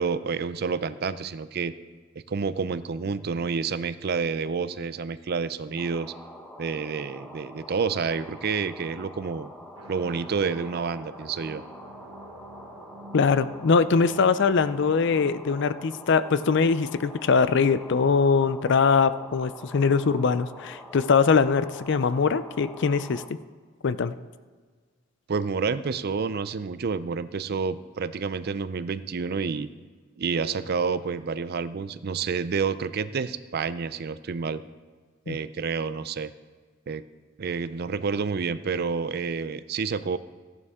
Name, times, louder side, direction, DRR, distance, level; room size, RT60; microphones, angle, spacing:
voice 1, 0.0-1.7 2.3-6.1 6.6-9.5 9.9-11.6 25.3-29.7 30.2-34.6 35.3-36.3 36.9-37.0 37.4-40.2, right 5 dB, 50° right, 14 dB, 0.5 m, -29 dB
sound 1, 5.8-23.3, equal, 5° left, 0.9 m, -45 dB
sound 2, 9.8-15.4, right 1 dB, 85° right, 0.9 m, -47 dB
voice 2, 13.1-23.2 23.8-24.1 35.3-35.4, left 5 dB, 60° left, 14 dB, 0.5 m, -22 dB
15.0 x 11.0 x 3.6 m, 1.5 s
head